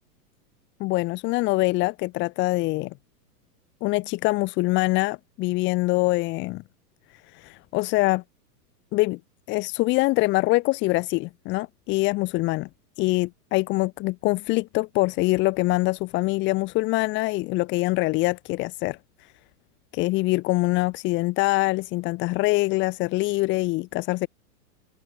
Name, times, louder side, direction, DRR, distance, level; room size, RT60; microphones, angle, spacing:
voice 1, 0.8-2.9 3.8-6.6 7.3-8.2 8.9-9.2 9.5-12.7 13.0-19.0 19.9-24.3, left 22 dB, 25° left, 4.9 m, -24 dB
supercardioid pair, 175°, 48 cm